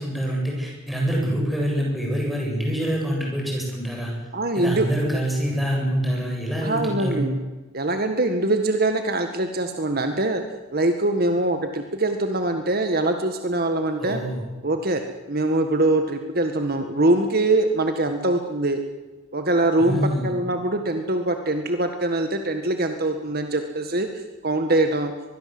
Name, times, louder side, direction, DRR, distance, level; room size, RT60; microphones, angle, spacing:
voice 1, 0.0-4.1 4.5-7.3 14.0-14.4 19.8-20.3, equal, ahead, -2 dB, 7.8 m, -25 dB
voice 2, 4.3-5.2 6.6-7.4 7.7-10.4 10.7-14.2 14.6-15.0 15.3-18.8 19.3-25.1, right 2 dB, 45° right, 6 dB, 1.7 m, -23 dB
24.5 x 21.0 x 7.9 m, 1.2 s
head